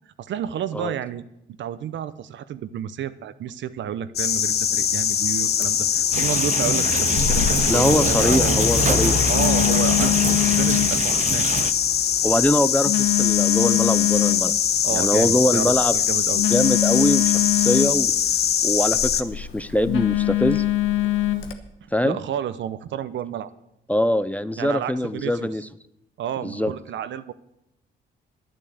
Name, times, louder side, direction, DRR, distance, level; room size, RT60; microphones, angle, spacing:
voice 1, 0.2-1.2 1.6-8.7 9.3-11.5 14.8-16.4 22.0-23.5 24.6-25.5 26.2-27.3, right 10 dB, 70° right, 14 dB, 0.8 m, -30 dB
sound 1, 4.2-19.2, left 9 dB, 55° left, 0.7 m, -22 dB
sound 2, 6.1-11.7, right 7 dB, 40° right, 0.6 m, -26 dB
Telephone, 7.2-21.5, left 14 dB, 90° left, 1.2 m, -25 dB
voice 2, 7.7-9.2 12.2-14.5 14.9-16.0 16.5-18.2 18.6-20.6 21.9-22.2 23.9-25.6 26.4-26.7, left 1 dB, 5° left, 13 dB, 0.5 m, -23 dB
11.0 x 9.0 x 8.0 m, 0.82 s
cardioid pair, 90°, 20 cm